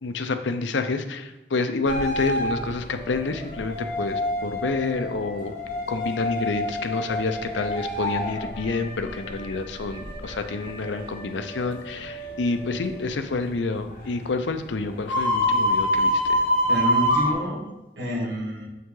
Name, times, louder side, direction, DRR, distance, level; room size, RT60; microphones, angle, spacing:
voice 1, 0.0-5.5 5.9-16.4, left 3 dB, 85° left, 8 dB, 0.6 m, -28 dB
sound 1, 1.9-17.3, equal, 45° left, 1.7 m, -28 dB
voice 2, 16.7-18.7, left 1 dB, 70° right, -4 dB, 1.9 m, -29 dB
7.4 x 5.6 x 3.8 m, 0.99 s
head